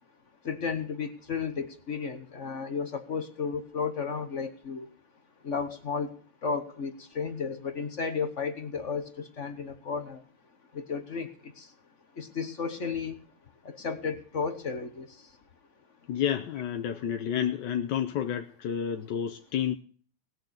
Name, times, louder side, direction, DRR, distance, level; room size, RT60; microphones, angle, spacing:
voice 1, 0.4-4.8 5.4-6.1 6.4-10.2 10.7-11.3 11.6-11.7 12.2-13.2 13.6-15.1, left 5 dB, 40° left, 8 dB, 1.2 m, -33 dB
voice 2, 16.1-19.7, left 9 dB, 65° left, 6 dB, 1.3 m, -30 dB
19.0 x 6.4 x 8.0 m, 0.44 s
omnidirectional pair, 2.4 m